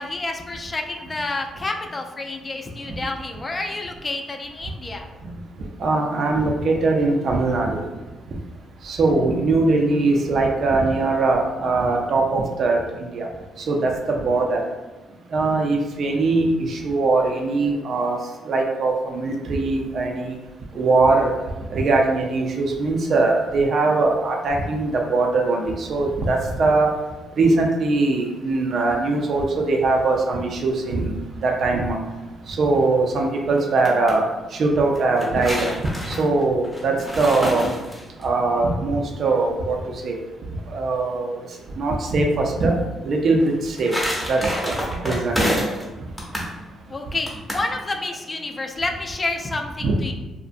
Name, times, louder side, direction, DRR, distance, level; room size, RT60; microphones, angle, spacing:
voice 1, 0.0-5.1 46.9-50.1, left 2 dB, 25° left, 3 dB, 0.3 m, -29 dB
voice 2, 5.8-7.9 8.8-13.3 13.7-14.6 15.3-18.2 18.5-20.4 20.7-21.3 21.7-26.9 27.4-31.1 31.4-32.0 32.5-34.2 34.6-35.7 36.1-37.7 38.2-40.2 40.7-41.4 41.8-42.8 43.0-43.9 44.3-44.8 45.0-45.4 49.8-49.9, right 3 dB, 60° right, 1 dB, 0.4 m, -21 dB
sound 1, 33.6-34.2 34.9-38.2 43.4-45.9 46.2-46.5 47.3-47.7, equal, ahead, 0.7 m, -28 dB
2.5 x 2.1 x 2.5 m, 1.1 s
cardioid pair, 90°, 0 cm